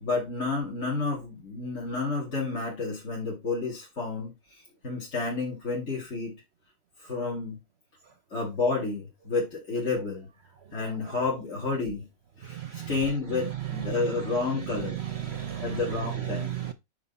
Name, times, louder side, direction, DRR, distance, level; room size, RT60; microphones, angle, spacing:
voice 1, 0.0-4.3 4.8-6.4 7.0-7.6 8.3-10.3 10.7-12.1 12.4-15.0 15.6-16.6, left 3 dB, 50° left, 2.9 m, -30 dB
voice 2, 10.7-11.2 12.4-13.0 13.3-16.7, right 11 dB, 60° right, 0.7 m, -35 dB
9.4 x 3.6 x 5.5 m
omnidirectional pair, 1.6 m